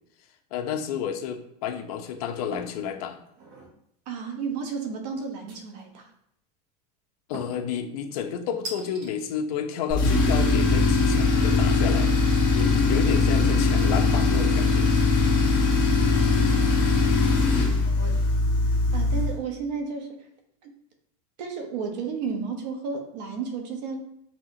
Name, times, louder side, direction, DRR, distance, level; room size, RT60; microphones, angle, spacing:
voice 1, 0.5-3.2 7.3-14.9 17.5-17.8, left 8 dB, 65° left, 5 dB, 0.6 m, -31 dB
sound 1, 2.5-2.8 3.3-3.7 5.5-6.0 7.3-7.7 8.6-9.1, right 2 dB, 40° right, 0.8 m, -40 dB
voice 2, 4.1-6.1 16.1-16.5 17.8-18.2 18.9-20.3 20.6-20.7 21.4-24.1, right 5 dB, 80° right, 4 dB, 0.9 m, -33 dB
Tools, 9.9-19.4, left 3 dB, 20° left, 1.1 m, -21 dB
5.4 x 2.8 x 2.7 m, 0.74 s
supercardioid pair, 180°, 21 cm